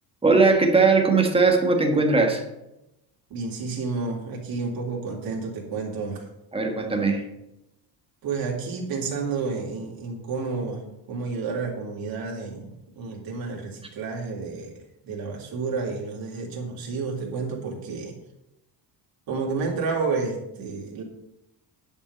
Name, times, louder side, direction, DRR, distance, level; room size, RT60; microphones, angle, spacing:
voice 1, 0.2-2.4 6.5-7.3, right 3 dB, 15° right, 3 dB, 1.5 m, -19 dB
voice 2, 3.3-6.3 8.2-14.7 15.0-18.1 19.3-21.0, right 4 dB, 50° right, -1 dB, 3.3 m, -30 dB
11.0 x 5.5 x 8.0 m, 0.87 s
cardioid pair, 160°, 44 cm